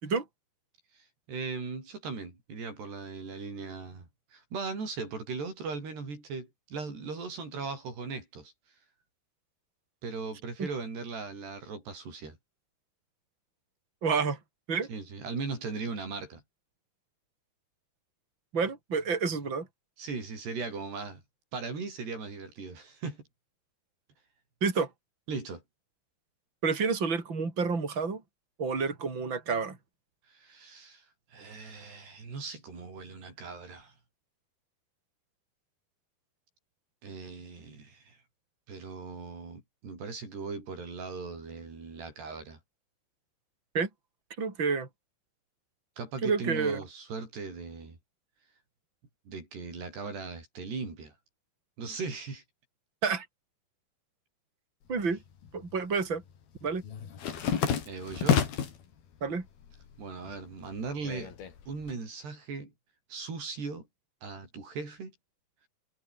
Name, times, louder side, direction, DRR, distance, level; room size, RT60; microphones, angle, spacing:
voice 1, 0.9-8.5 10.0-12.4 14.9-16.4 20.0-21.2 21.5-23.2 25.3-25.6 30.3-31.0 31.3-33.9 37.0-38.2 38.7-42.6 46.0-48.0 49.3-51.1 51.8-52.4 57.9-58.4 60.0-61.3 61.7-62.7 63.1-63.9 64.2-65.1, right 4 dB, 90° right, 10.0 m, -38 dB
voice 2, 14.0-14.4 14.7-14.9 18.5-19.7 24.6-24.9 26.6-28.2 28.6-29.8 43.7-43.9 44.4-44.9 46.2-46.8 53.0-53.3 54.9-55.2 55.5-56.2 56.6-56.8 59.2-59.4, right 5 dB, 30° right, 5.3 m, -29 dB
sound 1, 54.9-55.7 56.0-58.8 59.3-60.0 60.3-61.9, left 8 dB, 70° left, 5.0 m, -30 dB
omnidirectional pair, 4.6 m